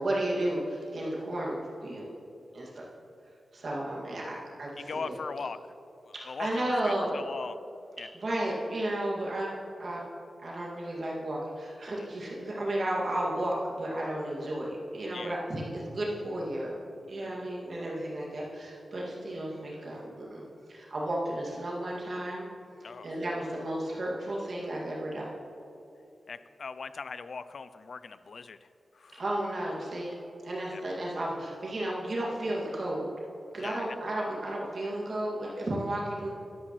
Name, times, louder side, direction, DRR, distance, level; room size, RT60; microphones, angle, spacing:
voice 1, 0.0-2.1 2.5-2.8 3.5-5.2 6.1-7.1 8.1-10.0 10.4-16.8 17.1-20.4 20.7-22.4 23.0-25.3 29.1-30.1 30.4-33.1 33.5-36.3, right 1 dB, 45° right, -5 dB, 2.1 m, -33 dB
voice 2, 4.8-5.6 6.1-7.6 8.0-8.1 15.1-15.4 17.2-17.4 22.8-23.1 26.3-28.7 28.9-29.2 30.7-30.8 33.6-34.0, left 5 dB, 55° left, 13 dB, 0.3 m, -40 dB
12.0 x 11.5 x 3.2 m, 2.7 s
wide cardioid pair, 180°, 0 cm